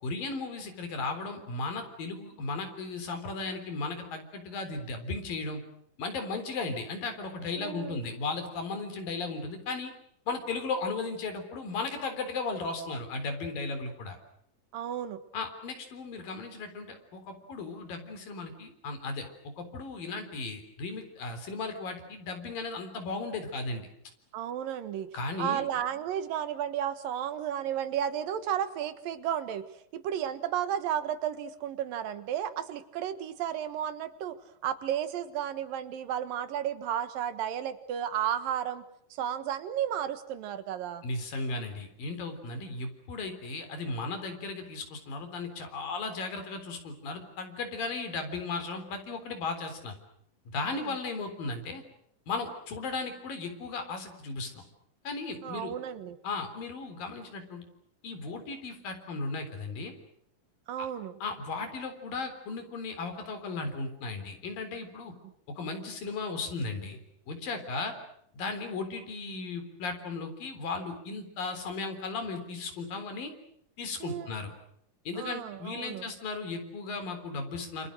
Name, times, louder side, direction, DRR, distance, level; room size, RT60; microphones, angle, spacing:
voice 1, 0.0-5.6 6.0-9.9 10.3-14.2 15.3-23.9 25.1-25.6 41.0-49.9 50.5-51.8 52.3-54.6 55.1-55.7 56.2-57.6 58.0-59.9 61.2-65.1 65.6-67.0 67.3-68.0 68.3-73.3 73.8-74.5 75.1-77.9, left 3 dB, 90° left, 7 dB, 5.5 m, -36 dB
voice 2, 7.6-8.0 14.7-15.2 24.3-25.1 25.4-34.4 34.6-38.8 39.1-41.0 50.7-51.0 55.4-56.2 60.7-61.2 65.2-65.3 74.0-74.3 75.2-76.1, right 10 dB, 85° right, 11 dB, 3.3 m, -33 dB
28.0 x 27.0 x 6.4 m, 0.70 s
omnidirectional pair, 3.9 m